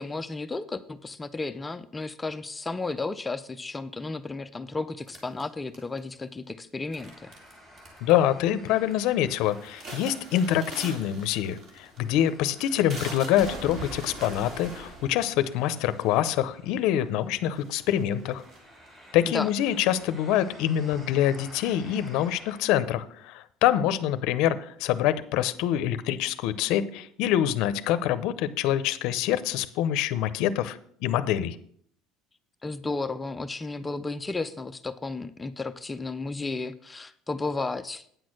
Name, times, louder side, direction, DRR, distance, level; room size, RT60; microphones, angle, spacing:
voice 1, 0.0-7.3 19.3-19.5 32.6-38.1, left 3 dB, 10° left, 11 dB, 0.3 m, -33 dB
sound 1, 5.1-6.2 6.9-7.5 7.8-8.3 8.7-9.0 9.4-16.4 17.1-17.2 17.5-19.1, right 1 dB, 35° right, 2.4 m, -42 dB
sound 2, 6.9-22.6, equal, 15° right, 1.9 m, -52 dB
voice 2, 8.0-18.4 19.1-31.6, left 11 dB, 55° left, 12 dB, 0.6 m, -25 dB
9.1 x 6.3 x 6.3 m, 0.64 s
cardioid pair, 175°, 0 cm